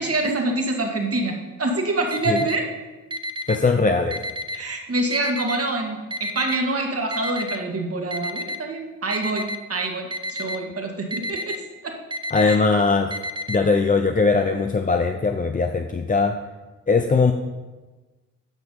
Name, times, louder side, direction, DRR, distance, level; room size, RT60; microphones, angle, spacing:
voice 1, 0.0-2.7 4.5-12.0 12.4-12.6, right 2 dB, 40° right, 2 dB, 1.9 m, -26 dB
Alarm, 2.1-2.6 3.1-3.6 4.1-4.6 5.1-5.6 6.1-6.6 7.1-7.6 8.1-8.6 9.1-9.6 10.1-10.6 11.1-11.6 12.1-12.6 13.1-13.6, left 1 dB, 15° right, 0.7 m, -29 dB
voice 2, 3.5-4.2 12.3-13.2 13.5-16.4 16.9-17.3, left 4 dB, 25° left, 4 dB, 0.7 m, -20 dB
9.1 x 6.0 x 5.6 m, 1.2 s
supercardioid pair, 55°, 35 cm